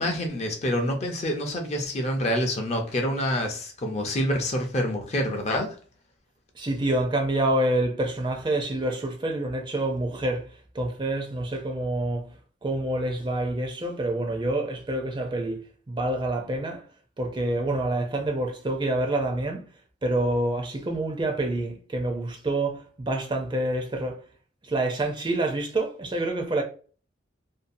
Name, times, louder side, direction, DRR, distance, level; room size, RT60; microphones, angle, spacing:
voice 1, 0.0-5.8, equal, 35° left, 0.5 m, -27 dB
voice 2, 6.6-10.5 10.7-12.3 12.6-16.8 17.2-19.7 20.0-24.2 24.6-26.6, right 1 dB, 25° right, 0.4 m, -27 dB
2.6 x 2.3 x 2.5 m
head